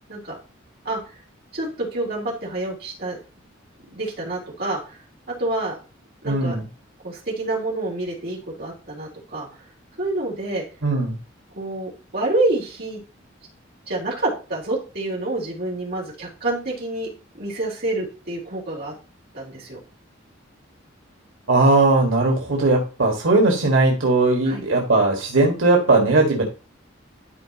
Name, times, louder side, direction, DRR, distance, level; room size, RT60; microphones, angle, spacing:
voice 1, 1.5-3.2 3.9-5.0 5.3-5.7 6.2-6.5 7.0-9.5 10.0-10.6 11.5-13.0 13.9-17.1 17.4-18.9 19.3-19.8 24.5-24.6, right 2 dB, 50° right, -4 dB, 3.3 m, -27 dB
voice 2, 6.2-6.6 10.8-11.2 21.5-26.4, right 2 dB, 90° right, 0 dB, 1.7 m, -18 dB
12.0 x 4.8 x 2.9 m, 0.33 s
head